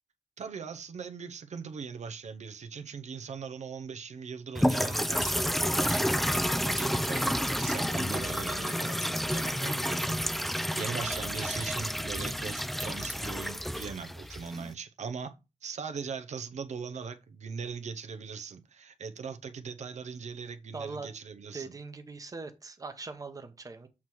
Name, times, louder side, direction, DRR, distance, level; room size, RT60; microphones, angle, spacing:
voice 1, 0.4-15.3 15.6-21.7, right 5 dB, 85° right, 0.6 m, -40 dB
sound 1, 4.6-14.7, equal, ahead, 0.3 m, -30 dB
voice 2, 20.7-21.1 21.5-23.9, right 4 dB, 30° right, 0.8 m, -41 dB
7.1 x 3.1 x 6.0 m
wide cardioid pair, 170°, 12 cm